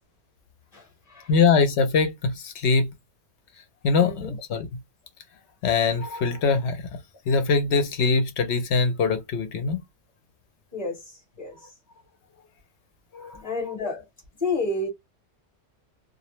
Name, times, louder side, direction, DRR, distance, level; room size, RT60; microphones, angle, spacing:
voice 1, 1.3-2.9 3.8-4.7 5.6-6.8 7.3-9.8 13.1-13.4, left 4 dB, 70° left, 0.8 m, -22 dB
voice 2, 4.0-4.3 10.7-11.5 13.4-14.0 14.4-14.9, left 3 dB, 35° left, 0.9 m, -30 dB
2.3 x 2.0 x 3.0 m
omnidirectional pair, 1.2 m